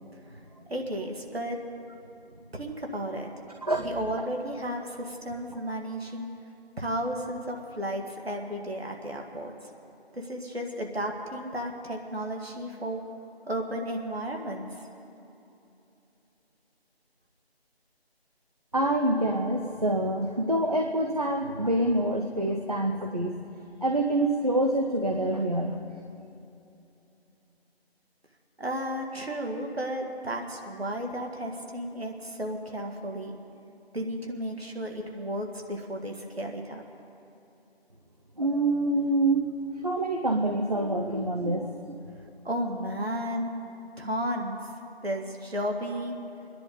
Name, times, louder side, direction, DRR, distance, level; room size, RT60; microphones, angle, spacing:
voice 1, 0.7-1.6 2.5-3.3 3.8-6.3 6.8-9.5 10.1-13.0 13.5-14.7 28.6-33.4 33.9-36.8 42.4-43.5 44.0-44.6 45.0-46.2, equal, 75° right, 2 dB, 1.8 m, -33 dB
voice 2, 18.7-23.4 23.8-25.8 38.4-42.0, right 1 dB, 40° right, 3 dB, 0.6 m, -26 dB
26.0 x 10.5 x 3.9 m, 2.8 s
figure-of-eight pair, 165°, 32 cm